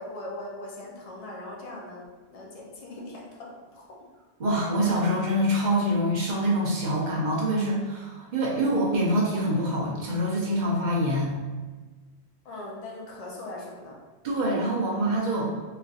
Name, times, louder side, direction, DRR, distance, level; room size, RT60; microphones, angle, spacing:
voice 1, 0.0-4.0 12.4-14.0, left 2 dB, 45° left, -2 dB, 0.5 m, -40 dB
voice 2, 4.4-11.3 14.2-15.5, equal, 45° right, -4 dB, 0.8 m, -25 dB
3.2 x 2.5 x 2.4 m, 1.3 s
omnidirectional pair, 1.2 m